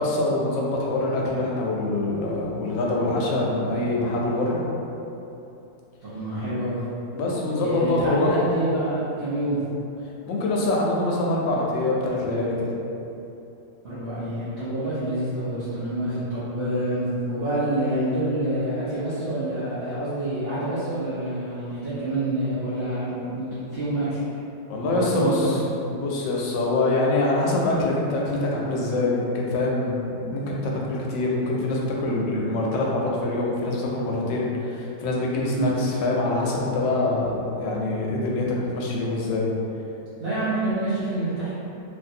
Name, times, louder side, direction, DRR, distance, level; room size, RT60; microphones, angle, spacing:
voice 1, 0.0-4.6 7.1-8.3 10.3-12.7 24.7-25.6 25.9-39.5, left 2 dB, 90° left, -3 dB, 1.3 m, -25 dB
voice 2, 6.0-6.8 7.6-9.6 13.8-24.2 24.8-25.7 35.5-35.7 40.2-41.5, right 1 dB, 55° right, -14 dB, 0.7 m, -27 dB
3.2 x 2.5 x 2.7 m, 2.9 s
omnidirectional pair, 1.9 m